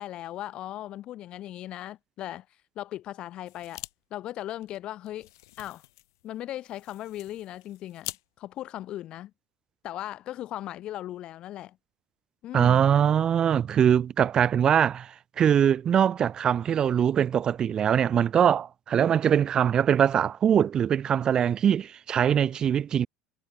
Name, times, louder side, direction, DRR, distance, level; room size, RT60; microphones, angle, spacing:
voice 1, 0.0-2.5 2.8-3.8 4.1-5.3 5.6-5.8 6.2-9.3 9.8-11.8 12.4-12.9, left 13 dB, 50° left, 6.0 m, -38 dB
sound 1, 3.5-3.9 4.2-4.3 4.6-8.2, left 19 dB, 70° left, 6.5 m, -45 dB
voice 2, 12.5-23.1, right 9 dB, 40° right, 0.9 m, -22 dB
hypercardioid pair, 70°, 2 cm